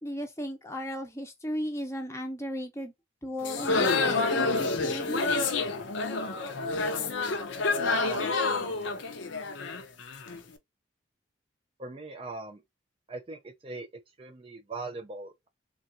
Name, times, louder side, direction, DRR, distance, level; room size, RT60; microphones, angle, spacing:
voice 1, 0.0-2.9 3.2-5.4, equal, 15° left, 0.6 m, -35 dB
sound 1, 3.4-10.4, left 3 dB, 75° left, 0.7 m, -28 dB
voice 2, 8.0-8.9 11.8-12.6 13.1-13.9 14.2-15.5, right 3 dB, 30° right, 0.4 m, -40 dB
3.4 x 2.4 x 2.5 m
head